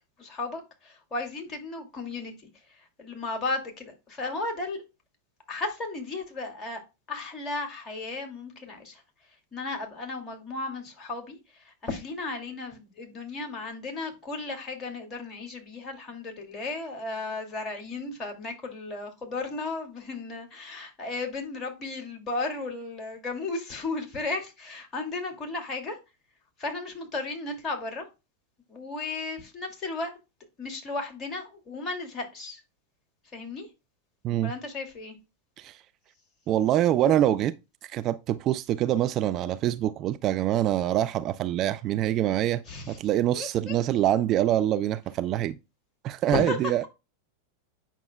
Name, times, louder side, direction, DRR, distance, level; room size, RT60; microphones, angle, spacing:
voice 1, 0.2-2.3 2.7-4.8 5.5-6.8 7.1-9.0 9.5-26.0 26.6-28.0 28.7-30.1 30.6-32.6 33.3-33.7 34.4-35.2 42.7-43.0 43.3-43.8 46.3-46.9, left 3 dB, 25° left, 2.4 m, -34 dB
voice 2, 36.5-37.5 37.8-45.6 46.0-46.8, right 12 dB, 35° right, 0.3 m, -25 dB
8.6 x 5.9 x 2.2 m
figure-of-eight pair, 90°, 0 cm